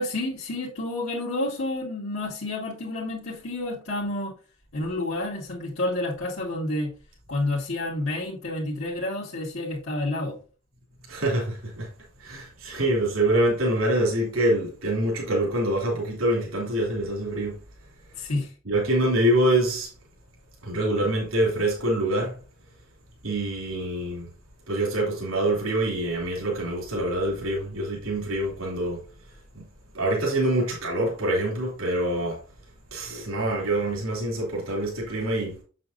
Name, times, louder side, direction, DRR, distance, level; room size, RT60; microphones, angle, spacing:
voice 1, 0.0-4.3 4.7-6.9 7.3-10.3 18.2-18.5, left 1 dB, 70° left, 2.2 m, -29 dB
voice 2, 11.1-11.9 12.2-17.5 18.6-19.9 20.6-22.4 23.2-24.3 24.7-29.0 29.5-29.6 29.9-32.4 32.9-35.6, right 1 dB, 85° right, 3.1 m, -25 dB
7.7 x 7.5 x 2.7 m
head